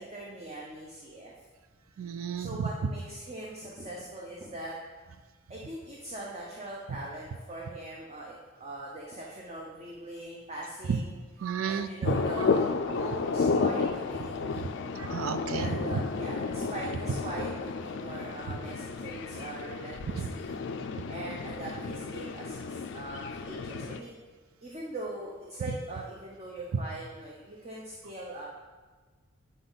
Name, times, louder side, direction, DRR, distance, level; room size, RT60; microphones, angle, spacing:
voice 1, 0.0-1.3 2.4-4.8 5.5-11.2 11.6-14.7 15.5-20.6 21.1-24.1 24.6-28.5, right 1 dB, 30° right, -3 dB, 0.7 m, -41 dB
voice 2, 2.0-2.5 10.9-11.0 11.4-12.1 15.0-15.7 20.2-20.3, right 6 dB, 85° right, 11 dB, 0.4 m, -31 dB
sound 1, 12.0-24.0, left 4 dB, 60° left, 0.3 m, -32 dB
9.2 x 3.9 x 4.0 m, 1.4 s
head